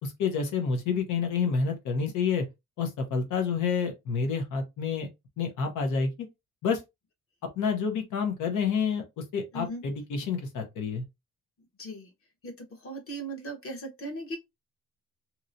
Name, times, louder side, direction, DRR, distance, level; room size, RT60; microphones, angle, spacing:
voice 1, 0.0-2.4 2.8-5.1 5.4-6.1 6.6-6.8 7.6-9.0 9.3-11.0, left 5 dB, 85° left, 0.9 m, -28 dB
voice 2, 11.8-12.1 12.4-14.4, right 1 dB, 45° left, 1.1 m, -38 dB
2.9 x 2.8 x 2.6 m
cardioid pair, 90°, 30 cm